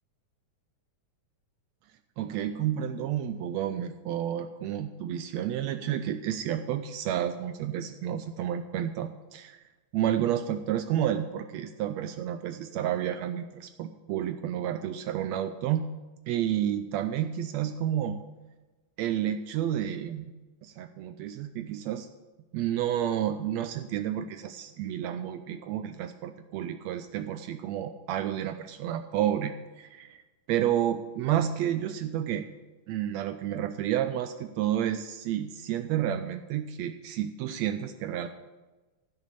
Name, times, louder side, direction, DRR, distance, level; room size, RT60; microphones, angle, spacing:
voice 1, 2.2-9.6 9.9-15.9 16.3-18.2 19.0-20.3 20.6-22.1 22.5-30.2 30.5-32.5 32.9-38.3, right 10 dB, 85° right, 9 dB, 1.5 m, -30 dB
14.5 x 6.2 x 6.9 m, 1.2 s
omnidirectional pair, 3.6 m